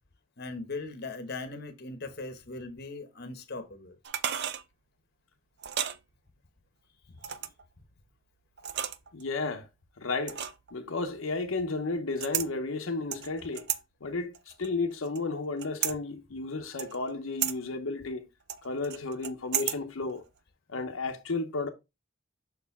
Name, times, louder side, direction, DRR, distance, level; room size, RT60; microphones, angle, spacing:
voice 1, 0.4-4.0 7.1-7.2, left 3 dB, 50° left, 1.0 m, -39 dB
sound 1, 4.0-4.6 5.6-6.0 7.2-7.6 8.6-9.2 10.3-10.7 12.2-12.5 13.1-13.8 14.3-15.2 15.6-16.0 16.8-17.1 17.4-17.6 18.5-19.8 20.1-20.2, right 10 dB, 50° right, 0.5 m, -33 dB
voice 2, 9.1-9.7 10.0-10.4 10.7-13.7 14.0-18.3 18.6-20.2 20.7-21.7, left 3 dB, 75° left, 0.8 m, -33 dB
6.3 x 4.5 x 3.5 m
head